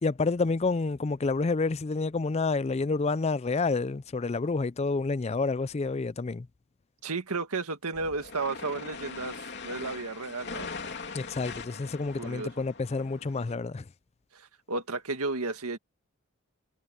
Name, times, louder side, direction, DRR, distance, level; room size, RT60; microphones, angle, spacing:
voice 1, 0.0-6.5 11.1-13.8, left 3 dB, 30° left, 0.4 m, -29 dB
voice 2, 7.0-10.7 12.2-12.5 14.3-15.8, right 3 dB, 80° right, 1.9 m, -33 dB
sound 1, 7.9-13.5, left 4 dB, 50° left, 3.1 m, -41 dB
head